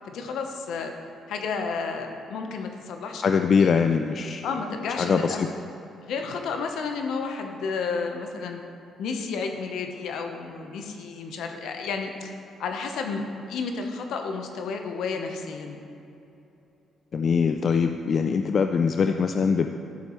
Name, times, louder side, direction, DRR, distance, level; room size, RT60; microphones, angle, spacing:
voice 1, 0.0-0.9 1.3-3.7 4.4-5.5 6.0-8.6 9.0-12.3 12.6-15.8, left 5 dB, 80° left, 4 dB, 0.9 m, -32 dB
voice 2, 3.2-4.4 5.0-5.5 17.1-19.7, left 6 dB, 50° left, 7 dB, 0.3 m, -22 dB
11.5 x 7.2 x 3.1 m, 2.8 s
cardioid pair, 90°, 0 cm